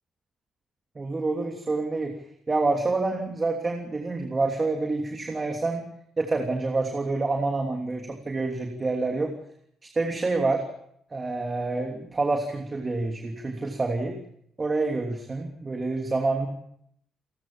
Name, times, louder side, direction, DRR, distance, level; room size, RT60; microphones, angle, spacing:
voice 1, 0.9-2.1 2.5-5.8 6.2-9.3 9.8-10.6 11.1-14.2 14.6-16.5, right 3 dB, 25° right, 3 dB, 2.9 m, -27 dB
29.0 x 12.5 x 7.3 m, 0.72 s
cardioid pair, 90°, 0 cm